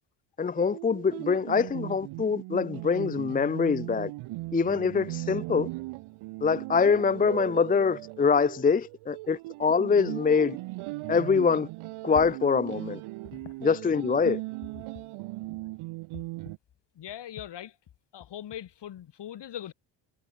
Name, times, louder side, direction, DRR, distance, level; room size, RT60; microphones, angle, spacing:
voice 1, 0.4-4.1 4.5-5.7 6.4-10.6 11.1-11.7 12.0-13.0 13.6-14.4, left 5 dB, 20° left, 0.5 m, -24 dB
sound 1, 0.6-16.6, right 20 dB, 90° right, 4.8 m, -38 dB
voice 2, 17.0-17.7 18.1-19.7, left 11 dB, 60° left, 5.8 m, -40 dB
cardioid pair, 95°, 47 cm